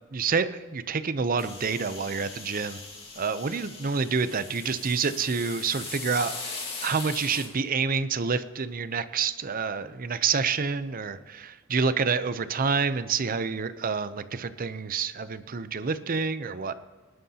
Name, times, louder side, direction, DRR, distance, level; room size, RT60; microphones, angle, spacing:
voice 1, 0.1-2.8 3.2-6.3 6.8-16.7, right 5 dB, 45° right, 13 dB, 0.6 m, -28 dB
sound 1, 1.4-7.5, left 4 dB, 30° left, 2.3 m, -39 dB
19.0 x 11.5 x 2.8 m, 1.4 s
head